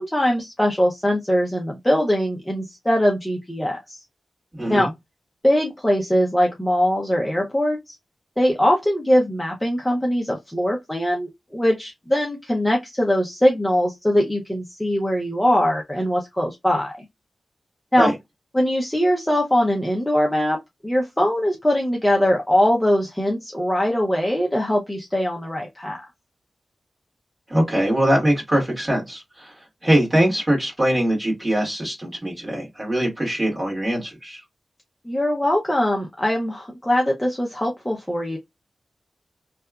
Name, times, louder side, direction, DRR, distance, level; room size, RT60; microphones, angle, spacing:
voice 1, 0.0-4.0 4.7-4.9 5.4-8.0 8.4-17.1 17.9-18.1 18.5-20.6 20.8-26.0 35.0-38.4, equal, 5° left, 0.5 m, -21 dB
voice 2, 4.5-4.9 18.0-18.1 27.5-29.5 29.8-34.4, right 1 dB, 15° right, 1.6 m, -22 dB
2.8 x 2.3 x 2.3 m
wide cardioid pair, 160°, 0 cm